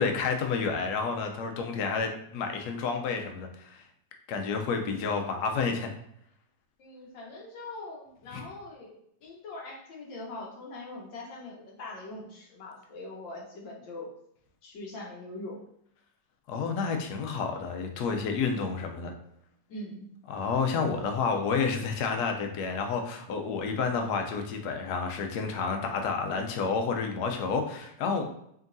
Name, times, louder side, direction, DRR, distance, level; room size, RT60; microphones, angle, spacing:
voice 1, 0.0-3.8 4.3-5.9 8.3-8.4 16.5-19.1 20.3-28.2, left 5 dB, 70° left, 4 dB, 1.2 m, -30 dB
voice 2, 6.8-14.1 14.6-15.6 19.7-20.1, left 2 dB, 90° left, -2 dB, 1.8 m, -42 dB
5.2 x 2.8 x 2.6 m, 0.74 s
omnidirectional pair, 1.9 m